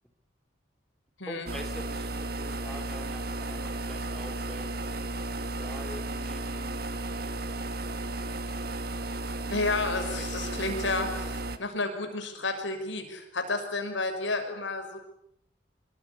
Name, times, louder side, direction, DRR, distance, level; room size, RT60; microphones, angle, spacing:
voice 1, 1.3-4.7 5.6-7.7 9.8-9.9 10.1-10.7 11.1-11.7, left 1 dB, ahead, 6 dB, 3.4 m, -46 dB
sound 1, 1.5-11.6, right 2 dB, 50° right, 1.7 m, -34 dB
voice 2, 9.5-15.0, left 3 dB, 80° left, 6 dB, 6.0 m, -31 dB
25.0 x 22.0 x 9.8 m, 0.76 s
head